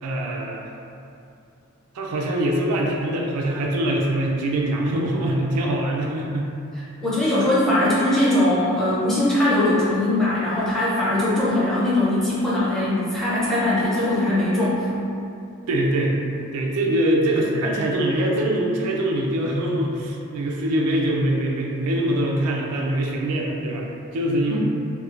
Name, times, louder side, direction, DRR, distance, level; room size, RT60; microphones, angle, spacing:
voice 1, 0.0-0.6 1.9-6.5 15.7-16.1 16.5-24.6, right 1 dB, 90° right, -1 dB, 0.4 m, -23 dB
voice 2, 7.0-14.9 24.5-24.6, left 1 dB, ahead, -10 dB, 0.5 m, -21 dB
2.9 x 2.0 x 2.4 m, 2.6 s
head